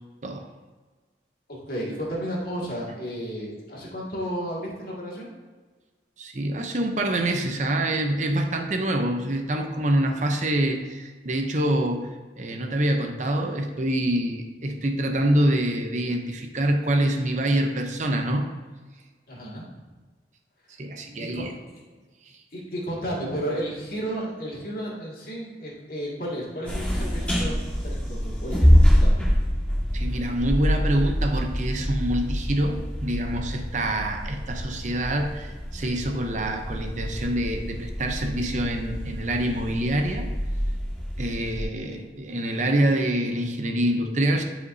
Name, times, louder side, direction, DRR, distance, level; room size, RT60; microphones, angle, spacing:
voice 1, 1.7-5.3 19.3-19.6 21.2-21.4 22.5-28.7 29.0-29.3 41.8-42.0, equal, 55° left, -4 dB, 2.1 m, -33 dB
voice 2, 6.2-12.1 12.4-18.5 20.8-21.5 29.9-40.3 41.2-44.4, right 1 dB, 45° right, 4 dB, 0.7 m, -26 dB
sound 1, 26.7-41.6, equal, 10° left, 1.7 m, -25 dB
11.0 x 5.1 x 2.7 m, 1.4 s
head